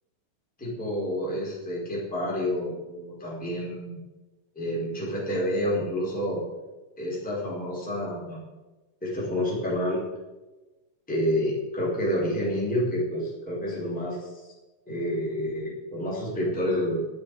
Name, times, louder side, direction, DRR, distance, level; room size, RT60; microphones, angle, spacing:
voice 1, 0.6-4.0 4.5-6.4 7.0-8.4 9.0-10.0 11.1-14.5 14.9-17.0, equal, ahead, -6 dB, 4.2 m, -29 dB
13.0 x 12.0 x 5.1 m, 1.2 s
omnidirectional pair, 5.6 m